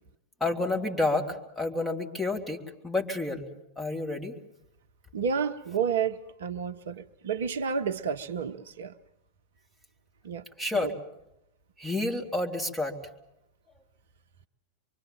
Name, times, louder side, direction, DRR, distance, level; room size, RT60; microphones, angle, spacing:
voice 1, 0.4-3.5 3.8-4.3 10.6-10.9 11.8-13.0, left 2 dB, 10° left, 2 dB, 3.2 m, -29 dB
voice 2, 5.1-8.9 10.2-10.4 10.7-10.9, right 6 dB, 60° right, 9 dB, 0.9 m, -30 dB
25.5 x 24.0 x 7.5 m, 0.85 s
figure-of-eight pair, 90°, 0 cm